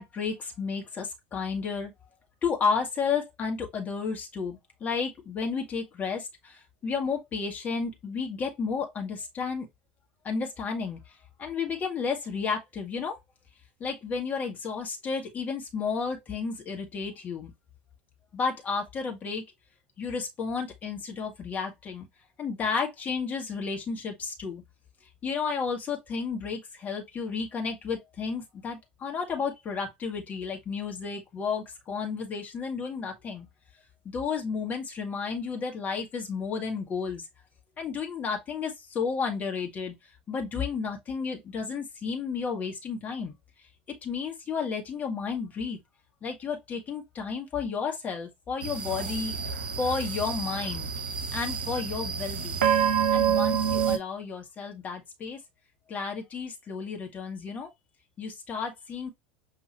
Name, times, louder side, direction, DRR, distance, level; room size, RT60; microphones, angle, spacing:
voice 1, 0.0-1.9 2.4-9.7 10.2-11.1 11.4-13.2 13.8-17.5 18.3-19.4 20.0-22.1 22.4-24.6 25.2-33.5 34.0-37.2 37.8-39.9 40.3-43.3 44.0-45.8 46.2-49.4 49.8-50.9 51.3-52.7 53.1-55.4 55.9-57.7 58.2-59.1, left 5 dB, 30° left, 1.5 m, -32 dB
sound 1, 48.6-54.0, right 7 dB, 75° right, 0.8 m, -27 dB
5.6 x 2.8 x 2.9 m
figure-of-eight pair, 80°, 5 cm